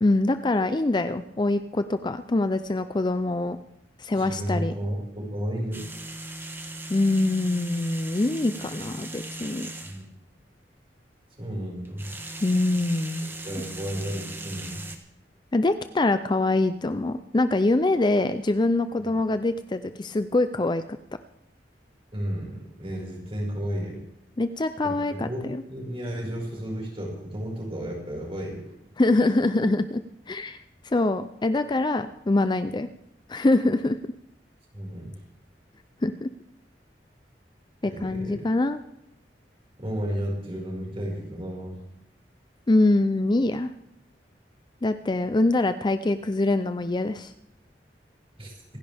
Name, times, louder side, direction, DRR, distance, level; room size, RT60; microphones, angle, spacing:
voice 1, 0.0-3.6 4.0-4.7 6.9-9.7 12.4-13.3 15.5-20.8 24.4-25.6 29.0-30.0 30.3-30.6 30.8-32.9 33.3-34.0 36.0-36.3 37.8-38.8 42.7-43.7 44.8-47.3, left 2 dB, 25° left, 11 dB, 0.5 m, -24 dB
voice 2, 4.2-5.9 9.8-10.1 11.4-12.2 13.4-14.8 19.0-19.1 22.1-24.0 24.8-28.6 34.7-35.1 37.8-38.4 39.8-41.7 48.4-48.5, equal, 35° right, -2 dB, 5.3 m, -33 dB
sound 1, 5.7-10.0 11.8-15.0, right 2 dB, 15° right, 1.4 m, -38 dB
26.5 x 10.5 x 3.5 m, 0.82 s
head